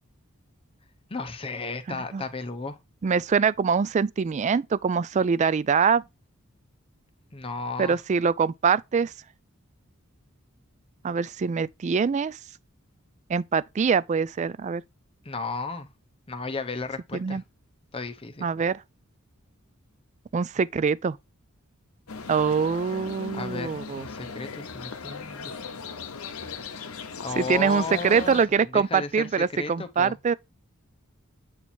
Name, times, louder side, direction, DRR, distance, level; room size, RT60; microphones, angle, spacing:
voice 1, 1.1-2.8 7.3-8.0 15.2-15.9 16.3-17.4 17.9-18.5 23.3-25.6 27.2-30.2, left 3 dB, 25° left, 0.8 m, -34 dB
voice 2, 1.9-2.2 3.0-6.0 7.8-9.1 11.0-12.4 13.3-14.8 17.1-17.4 18.4-18.8 20.3-21.2 22.3-24.1 27.4-30.3, right 6 dB, 35° right, 0.3 m, -24 dB
sound 1, 22.1-28.5, left 5 dB, 85° left, 0.9 m, -38 dB
8.3 x 2.9 x 4.3 m
head